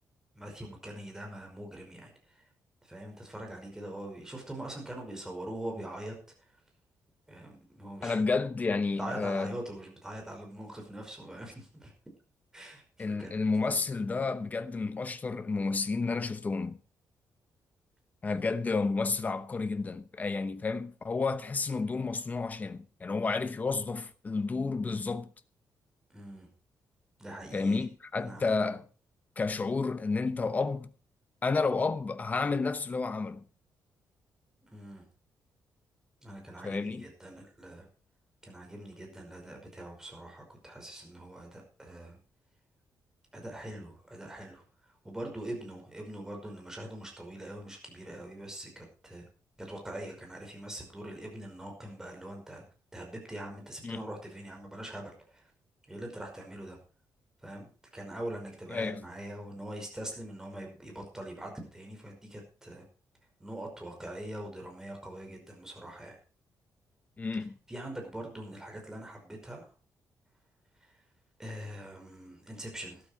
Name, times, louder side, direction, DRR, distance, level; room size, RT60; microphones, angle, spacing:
voice 1, 0.4-2.1 2.9-6.2 7.3-8.1 9.0-11.9 12.5-13.3 13.6-13.8 18.3-18.4 26.1-26.5 27.2-27.8 28.2-28.5 34.7-35.0 36.2-37.9 38.4-42.2 43.3-44.6 45.0-49.3 49.6-52.6 52.9-55.1 55.9-56.8 57.4-62.8 63.4-66.2 67.7-69.6 71.4-73.0, right 1 dB, 10° right, 5.5 m, -43 dB
voice 2, 8.0-9.6 13.0-16.8 18.2-25.3 27.5-28.9 29.4-30.9 31.4-33.4 36.6-37.1 53.8-54.1 58.7-59.0 67.2-67.6, left 4 dB, 25° left, 1.0 m, -31 dB
13.0 x 12.0 x 4.7 m
wide cardioid pair, 160°, 7 cm